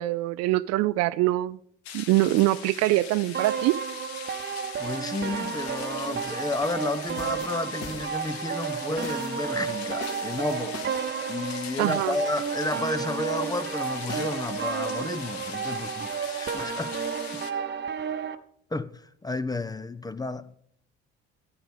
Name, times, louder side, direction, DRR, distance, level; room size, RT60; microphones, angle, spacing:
voice 1, 0.0-1.6 1.9-3.8 11.8-12.2, right 17 dB, 55° right, 0.5 m, -24 dB
sound 1, 1.8-17.5, left 8 dB, 75° left, 1.1 m, -41 dB
sound 2, 3.3-18.4, right 7 dB, 35° right, 1.0 m, -32 dB
voice 2, 4.8-10.8 11.3-17.0 17.3-17.4 18.7-20.6, left 2 dB, 10° left, 0.5 m, -32 dB
sound 3, 6.9-8.5 9.0-9.4 10.0-11.9 14.1-15.7, left 3 dB, 50° left, 2.3 m, -43 dB
14.0 x 10.0 x 5.0 m
figure-of-eight pair, 55°, 32 cm